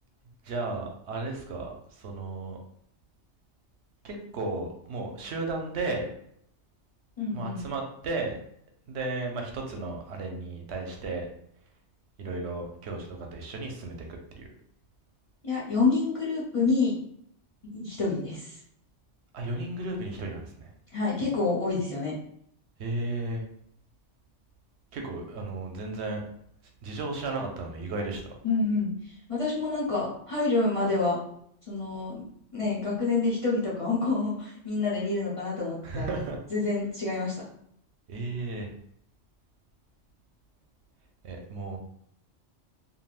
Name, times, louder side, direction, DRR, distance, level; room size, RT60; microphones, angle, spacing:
voice 1, 0.4-2.6 4.0-6.1 7.3-8.4 8.9-11.3 12.2-14.1 14.4-14.5 19.3-20.7 22.8-23.4 24.9-26.2 26.8-28.3 35.8-36.4 38.1-38.7 41.2-41.8, right 2 dB, 70° right, 2 dB, 0.9 m, -34 dB
voice 2, 7.2-7.6 15.4-16.9 17.6-18.6 20.9-22.1 28.4-31.2 31.7-32.2 32.5-36.2 36.5-37.4, left 3 dB, 35° left, -6 dB, 0.6 m, -28 dB
3.3 x 2.5 x 2.3 m, 0.69 s
omnidirectional pair, 1.2 m